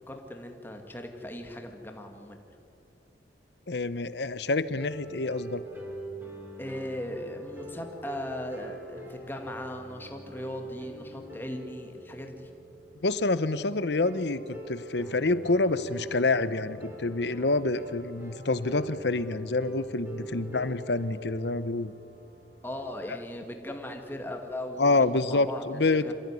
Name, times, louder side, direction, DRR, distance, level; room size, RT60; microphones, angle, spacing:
voice 1, 0.1-2.4 6.6-12.5 22.6-26.1, left 1 dB, 10° left, 3 dB, 2.0 m, -38 dB
voice 2, 3.7-5.6 13.0-21.9 24.8-26.1, left 3 dB, 70° left, 15 dB, 0.9 m, -27 dB
sound 1, 4.7-22.8, right 2 dB, 10° right, 3.3 m, -43 dB
26.0 x 15.5 x 9.8 m, 2.7 s
head